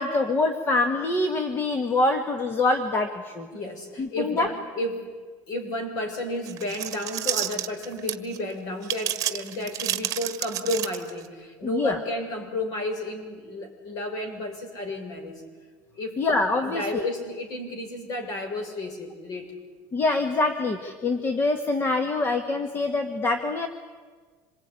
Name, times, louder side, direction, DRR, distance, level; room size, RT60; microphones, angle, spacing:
voice 1, 0.0-3.5 4.0-4.5 11.6-12.0 16.2-17.0 19.9-23.7, left 2 dB, 25° left, 7 dB, 1.7 m, -25 dB
voice 2, 3.5-5.1 5.5-15.4 16.0-16.2 16.6-19.5, left 1 dB, 45° left, 4 dB, 6.6 m, -32 dB
sound 1, 6.4-8.4 8.8-11.3, right 13 dB, 40° right, 1.5 m, -30 dB
26.5 x 22.0 x 9.9 m, 1.5 s
cardioid pair, 145°, 9 cm